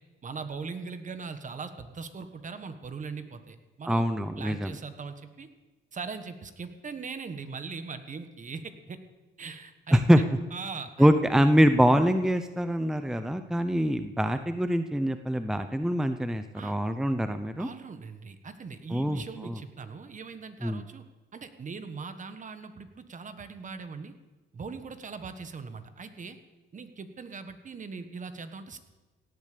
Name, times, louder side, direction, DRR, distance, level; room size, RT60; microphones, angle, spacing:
voice 1, 0.2-4.0 4.4-5.5 5.9-9.0 9.4-10.0 10.5-11.1 16.5-16.7 17.6-21.0 21.3-24.1 24.5-26.4 26.7-28.8, right 5 dB, 40° right, 9 dB, 1.4 m, -40 dB
voice 2, 3.8-4.8 9.9-10.2 11.0-17.7 18.9-19.6 20.6-20.8, equal, ahead, 9 dB, 0.6 m, -24 dB
17.0 x 8.8 x 6.8 m, 1.2 s
cardioid pair, 90°, 20 cm